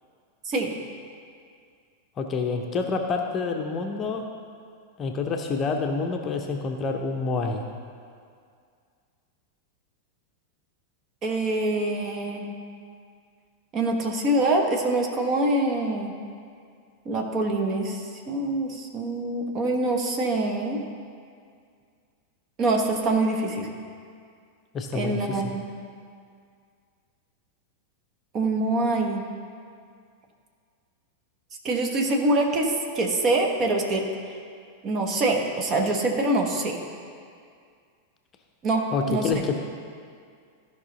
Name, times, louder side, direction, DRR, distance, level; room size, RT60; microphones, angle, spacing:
voice 1, 2.2-4.2 5.0-7.6 24.7-25.4 38.9-39.6, left 4 dB, 25° left, 3 dB, 0.7 m, -28 dB
voice 2, 11.2-12.5 13.7-16.1 17.0-20.8 22.6-23.7 24.9-25.6 28.3-29.2 31.6-34.1 34.8-36.8 38.6-39.4, right 2 dB, 30° right, 2 dB, 1.2 m, -25 dB
14.5 x 5.5 x 4.0 m, 2.2 s
figure-of-eight pair, 90°, 0 cm